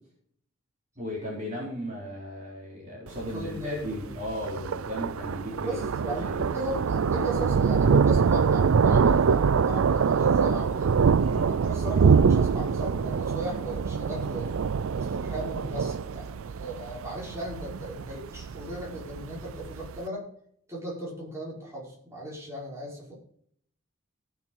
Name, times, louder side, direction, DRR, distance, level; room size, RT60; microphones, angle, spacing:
voice 1, 1.0-5.8 6.1-6.4 11.2-11.5, equal, 35° right, -4 dB, 4.1 m, -36 dB
Thunder, 3.1-20.0, right 6 dB, 80° right, 0.4 m, -24 dB
voice 2, 3.3-4.1 5.6-10.9 11.5-14.5 14.9-20.3 20.7-23.1, right 1 dB, 15° right, -5 dB, 5.4 m, -37 dB
17.5 x 6.5 x 5.3 m, 0.65 s
head